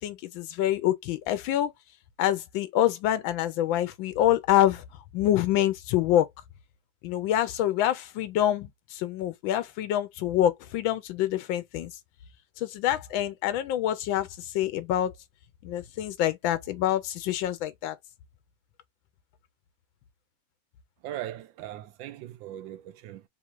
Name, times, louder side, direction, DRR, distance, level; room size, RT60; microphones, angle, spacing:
voice 1, 0.0-1.7 2.2-4.8 5.1-6.3 7.0-11.9 12.6-15.1 15.6-18.0, left 12 dB, 90° left, 1.4 m, -26 dB
voice 2, 21.0-23.2, right 13 dB, 80° right, 1.3 m, -39 dB
3.6 x 2.4 x 4.5 m
omnidirectional pair, 2.1 m